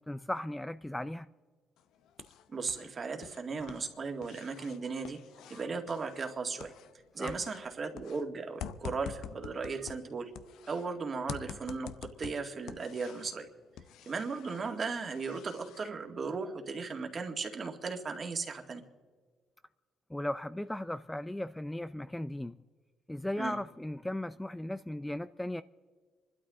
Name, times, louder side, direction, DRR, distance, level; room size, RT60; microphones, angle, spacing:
voice 1, 0.1-1.3 7.2-7.3 20.1-22.6 23.1-25.6, left 1 dB, 10° left, 0.4 m, -36 dB
sound 1, 1.8-2.9 3.2-7.0 7.3-10.9 11.3-13.4 13.8-15.9, left 8 dB, 85° left, 0.6 m, -47 dB
voice 2, 2.5-5.2 5.5-6.7 7.1-10.3 10.7-13.5 14.1-18.8 23.4-23.6, right 4 dB, 40° right, 2.1 m, -36 dB
27.5 x 12.5 x 3.8 m
cardioid pair, 90°, 0 cm